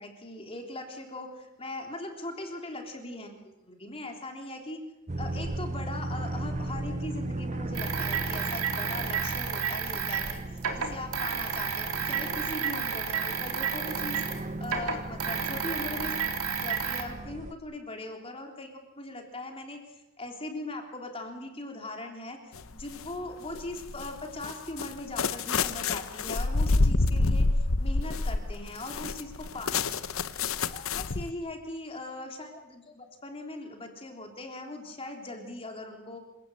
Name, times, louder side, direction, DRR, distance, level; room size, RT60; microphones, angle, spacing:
voice 1, 0.0-4.8 5.2-16.1 16.4-30.3 30.7-36.2, left 2 dB, 25° left, 3 dB, 3.6 m, -40 dB
sound 1, 5.1-17.5, right 2 dB, 30° right, 0.8 m, -37 dB
sound 2, 7.7-14.4 14.6-17.0, right 6 dB, 75° right, 3.5 m, -31 dB
sound 3, 22.5-23.1 23.5-31.3, left 3 dB, 65° left, 1.0 m, -28 dB
27.5 x 17.5 x 8.0 m, 0.93 s
head